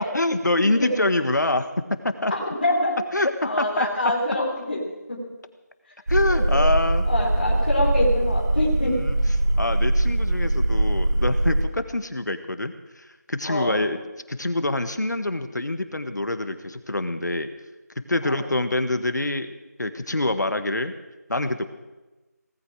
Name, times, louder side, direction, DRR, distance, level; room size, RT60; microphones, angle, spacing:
voice 1, 0.0-2.3 3.1-3.9 6.1-7.1 8.8-9.2 9.6-14.0 14.3-17.5 18.1-19.5 19.8-20.9 21.3-21.6, left 2 dB, 85° left, 9 dB, 1.7 m, -25 dB
voice 2, 2.3-3.0 3.4-4.8 5.1-5.3 6.3-6.6 7.0-9.0 10.4-10.6 13.4-13.8 18.2-18.4, left 1 dB, 35° left, -3 dB, 3.8 m, -26 dB
sound 1, 6.1-11.6, right 1 dB, 75° right, 2.3 m, -22 dB
18.5 x 15.0 x 4.9 m, 1.1 s
figure-of-eight pair, 180°, 9 cm